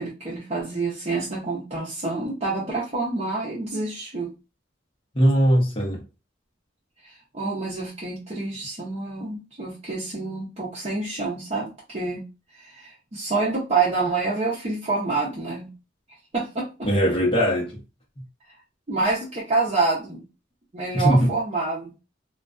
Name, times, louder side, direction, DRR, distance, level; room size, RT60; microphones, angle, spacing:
voice 1, 0.0-4.3 7.0-15.7 16.3-16.9 18.9-20.3 20.7-22.0, right 3 dB, 35° right, 0.7 m, -27 dB
voice 2, 5.1-6.0 16.8-17.8 20.9-21.3, equal, 30° left, 0.8 m, -20 dB
2.4 x 2.2 x 2.3 m
head